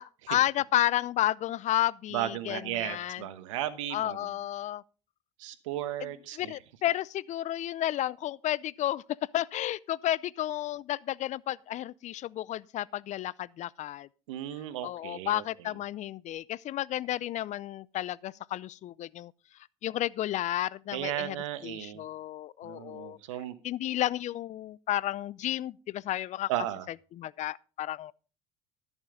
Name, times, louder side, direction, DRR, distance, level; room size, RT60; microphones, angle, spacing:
voice 1, 0.0-3.2 3.9-4.8 6.0-9.0 9.3-14.1 14.8-19.3 19.8-21.4 21.6-23.2 23.6-26.5 27.1-28.1, left 13 dB, 50° left, 0.5 m, -32 dB
voice 2, 2.1-4.2 5.4-6.6 14.3-15.4 20.9-22.1 22.6-23.5 26.5-26.9, right 13 dB, 90° right, 1.1 m, -35 dB
13.0 x 7.2 x 4.9 m
supercardioid pair, 85°, 16 cm